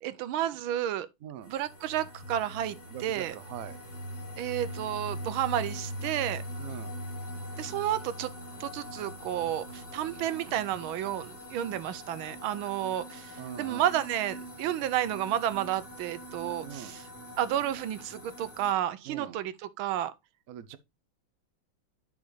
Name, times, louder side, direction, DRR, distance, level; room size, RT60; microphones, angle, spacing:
voice 1, 0.0-1.1 1.5-3.4 4.4-6.4 7.6-8.3 8.6-17.1 17.4-20.1, right 11 dB, 90° right, 1.5 m, -31 dB
voice 2, 1.2-1.5 2.9-3.8 6.6-6.9 13.4-13.8 16.6-17.0 19.1-19.4 20.5-20.8, right 10 dB, 60° right, 0.9 m, -42 dB
sound 1, 1.4-18.7, equal, 55° left, 2.5 m, -42 dB
10.5 x 5.3 x 3.1 m
omnidirectional pair, 2.2 m